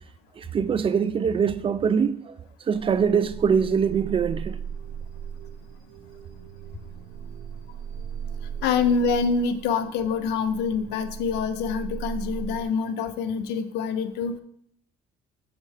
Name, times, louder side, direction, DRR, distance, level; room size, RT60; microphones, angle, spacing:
voice 1, 0.4-2.3 2.7-4.6, right 6 dB, 30° right, 0.4 m, -23 dB
sound 1, 2.7-12.6, right 7 dB, 85° right, 0.6 m, -38 dB
voice 2, 8.6-14.4, left 5 dB, 80° left, 0.6 m, -26 dB
6.7 x 3.6 x 4.8 m
cardioid pair, 110°, 17 cm